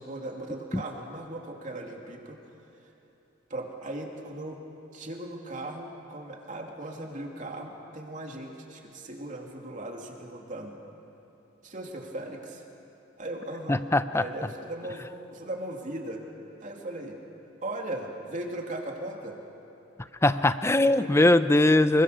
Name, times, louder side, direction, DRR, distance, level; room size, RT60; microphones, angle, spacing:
voice 1, 0.0-2.4 3.5-4.6 4.9-10.8 11.6-12.6 13.2-13.8 14.1-16.2 16.6-17.2 17.6-19.4 20.8-21.2, right 1 dB, 40° right, 1 dB, 2.7 m, -38 dB
voice 2, 13.7-14.3 20.2-22.0, left 2 dB, 15° left, 12 dB, 0.6 m, -21 dB
26.5 x 23.0 x 6.8 m, 3.0 s
head